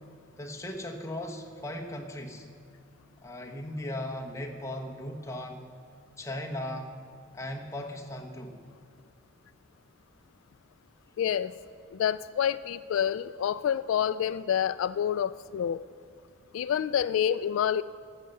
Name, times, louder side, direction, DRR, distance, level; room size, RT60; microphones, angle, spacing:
voice 1, 0.4-2.4 3.2-5.7 6.2-6.9 7.3-8.6, left 1 dB, 15° left, 1 dB, 1.1 m, -37 dB
voice 2, 11.2-11.5 11.9-15.8 16.5-17.8, left 9 dB, 85° left, 15 dB, 0.3 m, -28 dB
14.0 x 6.7 x 7.8 m, 2.5 s
head